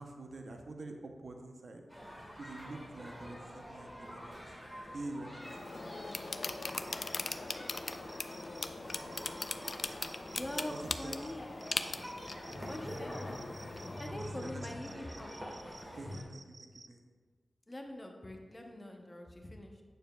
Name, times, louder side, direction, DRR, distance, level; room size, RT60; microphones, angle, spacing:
voice 1, 0.0-1.8 2.4-4.4 4.9-5.5 10.6-11.3 12.5-12.7 14.1-15.3 15.9-17.0, right 2 dB, 60° right, 3 dB, 0.7 m, -47 dB
sound 1, 1.9-16.2, equal, 10° right, 1.7 m, -47 dB
sound 2, 5.4-14.0, left 3 dB, 45° left, 0.3 m, -40 dB
sound 3, 5.4-16.9, right 2 dB, 40° right, 0.3 m, -56 dB
voice 2, 10.3-11.5 12.7-13.1 14.0-15.3 17.7-19.8, left 1 dB, 20° left, 2 dB, 0.7 m, -43 dB
9.2 x 6.7 x 2.3 m, 1.5 s
wide cardioid pair, 115°, 0 cm